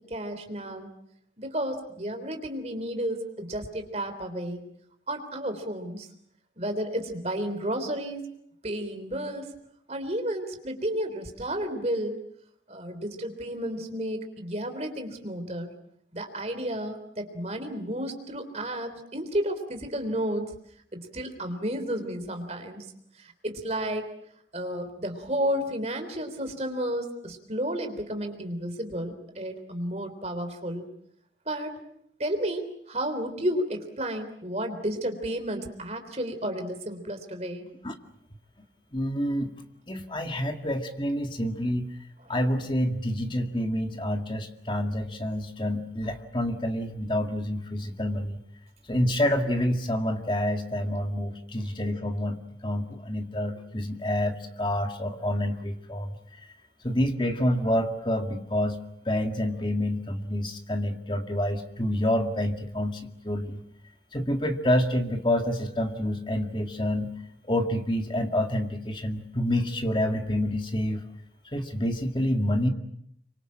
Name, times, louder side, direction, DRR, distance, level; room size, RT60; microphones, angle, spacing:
voice 1, 0.1-0.9 1.4-4.6 5.1-6.1 6.6-8.3 8.6-9.5 9.9-12.2 12.7-15.7 16.1-20.5 20.9-22.8 23.4-24.0 24.5-30.9 31.5-31.7 32.2-37.7, right 1 dB, 40° right, 7 dB, 3.6 m, -32 dB
voice 2, 38.9-39.5 39.9-41.9 42.3-48.4 48.9-56.1 56.8-58.8 59.1-63.6 64.1-67.1 67.5-71.0 71.5-72.7, left 1 dB, 25° left, 5 dB, 2.0 m, -28 dB
26.5 x 24.5 x 7.5 m, 0.71 s
head